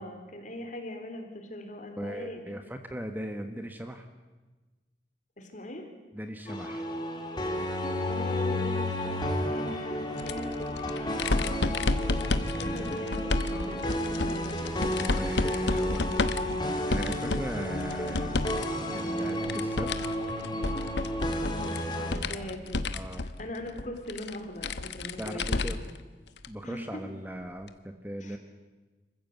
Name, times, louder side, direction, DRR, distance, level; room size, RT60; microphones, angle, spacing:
voice 1, 0.0-2.4 5.4-5.9 8.1-11.4 12.6-13.2 13.5-14.6 21.4-22.8 23.4-25.7 26.6-26.9 28.2-28.4, left 1 dB, 45° left, 4 dB, 3.4 m, -41 dB
voice 2, 2.0-4.1 6.1-6.9 12.5-13.9 15.0-18.6 18.9-19.9 22.3-22.5 22.9-23.3 25.2-25.8 26.5-28.4, equal, 10° right, 6 dB, 1.2 m, -39 dB
sound 1, 6.5-22.2, left 1 dB, 25° left, 2.6 m, -32 dB
sound 2, 10.2-18.6 19.0-26.0 26.4-26.5 27.7-27.8, left 2 dB, 80° left, 1.0 m, -31 dB
26.5 x 15.0 x 8.3 m, 1.2 s
head